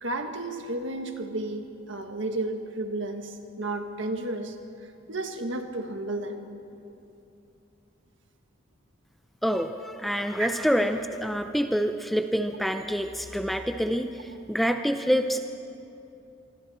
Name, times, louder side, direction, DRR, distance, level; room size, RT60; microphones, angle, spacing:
voice 1, 0.0-4.5 5.1-6.4 10.4-10.5, right 2 dB, 60° right, 5 dB, 1.7 m, -32 dB
voice 2, 9.4-15.4, equal, ahead, 7 dB, 0.5 m, -27 dB
27.0 x 24.0 x 4.3 m, 2.8 s
head